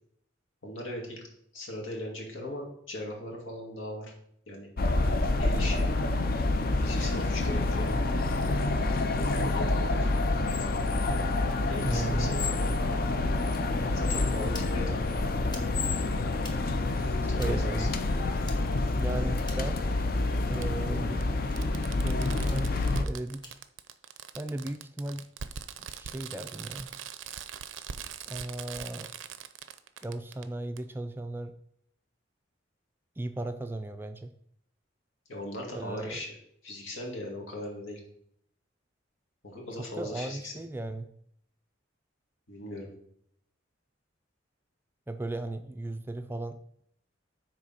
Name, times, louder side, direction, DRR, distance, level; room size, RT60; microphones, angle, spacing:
voice 1, 0.6-1.3 1.5-4.1 4.5-4.7 5.4-5.9 6.8-8.0 9.2-10.1 11.7-12.6 13.9-15.1 17.3-17.9 35.3-36.4 36.6-38.0 39.4-40.5 42.5-42.9, left 1 dB, 85° left, -1 dB, 2.1 m, -38 dB
sound 1, 4.8-23.0, left 2 dB, 50° left, 0.5 m, -28 dB
voice 2, 11.8-12.3 17.4-17.9 18.9-19.8 20.5-21.3 22.0-23.6 24.3-25.3 25.8-26.9 28.3-29.1 30.0-31.5 33.2-34.3 35.7-36.2 39.8-41.1 45.1-46.6, right 2 dB, 10° right, 8 dB, 0.3 m, -36 dB
sound 2, 13.5-13.6 14.4-14.7 15.4-15.7 16.4-16.6 17.4-17.5 18.4-18.6 19.4-19.7 20.4-20.6 21.4-21.6 22.4-22.6 23.4-23.5 24.5-24.8, left 2 dB, 20° left, 0.9 m, -46 dB
Fireworks, 17.3-17.4 18.9-19.0 20.6-20.7 21.2-21.3 21.6-30.4 30.8-30.9, right 8 dB, 80° right, 0.5 m, -41 dB
6.3 x 4.3 x 5.6 m, 0.71 s
head